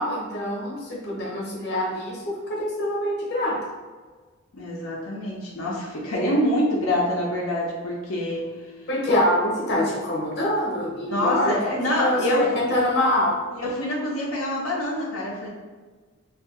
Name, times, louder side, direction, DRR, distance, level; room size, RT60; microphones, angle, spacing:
voice 1, 0.0-3.6 8.9-13.4, left 1 dB, 50° left, -3 dB, 0.8 m, -25 dB
voice 2, 4.5-8.7 11.1-12.5 13.5-15.5, left 1 dB, 85° left, -4 dB, 0.6 m, -26 dB
2.6 x 2.4 x 3.7 m, 1.4 s
head